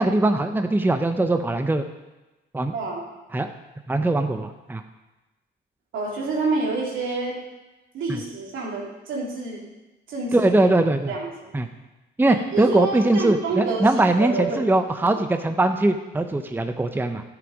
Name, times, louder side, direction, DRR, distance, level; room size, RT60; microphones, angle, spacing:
voice 1, 0.0-1.8 2.5-2.7 3.3-3.5 3.9-4.8 8.1-8.2 10.3-11.1 11.5-11.7 12.2-17.2, right 2 dB, 10° right, 7 dB, 0.7 m, -21 dB
voice 2, 2.7-3.0 5.9-7.3 7.9-9.6 10.1-10.5 11.1-11.5 12.3-13.9 14.2-14.7, right 3 dB, 80° right, -3 dB, 3.2 m, -28 dB
11.5 x 7.9 x 5.3 m, 1.1 s
cardioid pair, 90°, 20 cm